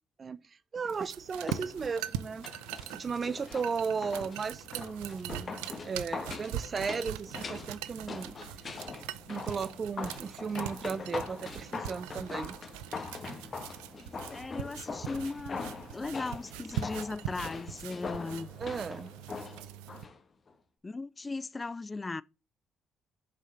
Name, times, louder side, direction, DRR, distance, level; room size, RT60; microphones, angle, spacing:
voice 1, 0.7-2.5 2.9-8.3 9.3-12.6 18.6-19.1, right 5 dB, 45° right, 0.6 m, -35 dB
sound 1, 0.9-20.0, right 11 dB, 90° right, 0.6 m, -42 dB
sound 2, 1.3-20.2 20.5-20.6, left 4 dB, 45° left, 1.7 m, -42 dB
voice 2, 14.3-18.5 20.8-22.2, left 3 dB, 25° left, 0.5 m, -37 dB
7.0 x 5.5 x 6.4 m
supercardioid pair, 60°, 0 cm